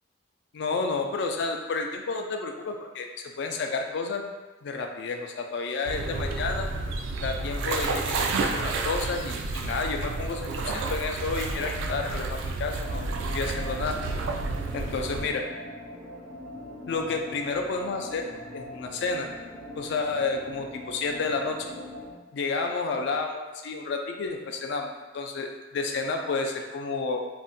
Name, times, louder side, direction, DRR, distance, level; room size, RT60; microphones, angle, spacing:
voice 1, 0.5-4.2 4.6-6.7 7.2-13.1 13.3-14.0 14.7-15.4 16.9-18.3 18.5-19.3 19.8-21.6 22.3-27.3, left 4 dB, 65° left, 3 dB, 0.4 m, -31 dB
sound 1, 5.9-15.2, right 3 dB, 85° right, 0.3 m, -30 dB
sound 2, 12.8-22.1, left 1 dB, 5° left, 0.4 m, -42 dB
2.5 x 2.1 x 3.7 m, 1.2 s
head